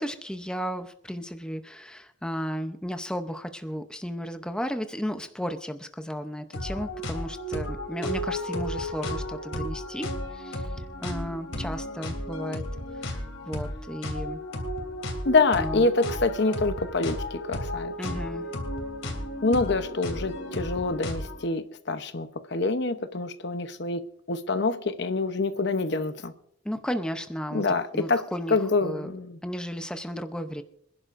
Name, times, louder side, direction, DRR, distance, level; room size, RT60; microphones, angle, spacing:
voice 1, 0.0-12.6 13.0-13.2 13.4-14.4 15.5-15.9 18.0-18.5 26.6-27.6 27.9-29.1 29.4-30.6, equal, 5° left, 0.7 m, -34 dB
sound 1, 6.5-21.4, left 1 dB, 80° left, 3.2 m, -34 dB
voice 2, 15.2-18.2 19.4-26.3 27.5-28.2 28.5-29.4, left 3 dB, 60° left, 0.8 m, -26 dB
26.5 x 11.0 x 2.6 m
head